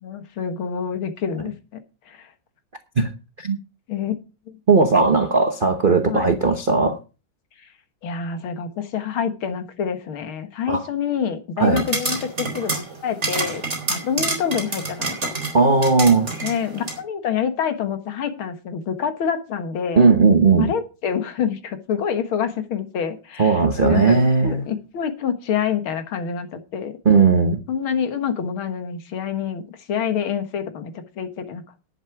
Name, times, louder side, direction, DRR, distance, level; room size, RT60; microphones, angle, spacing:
voice 1, 0.0-1.8 2.1-2.3 3.9-4.1 4.5-4.6 6.1-6.3 8.0-13.6 13.9-15.3 16.4-20.1 20.6-24.2 24.4-27.0 27.7-31.6, left 7 dB, 70° left, 2.2 m, -27 dB
voice 2, 4.7-7.0 10.7-10.8 11.6-11.8 15.5-16.3 19.9-20.7 23.4-24.6 27.0-27.6, right 4 dB, 45° right, 0.6 m, -17 dB
sound 1, 11.7-17.0, right 3 dB, 30° right, 3.6 m, -28 dB
11.0 x 8.2 x 6.0 m
omnidirectional pair, 2.4 m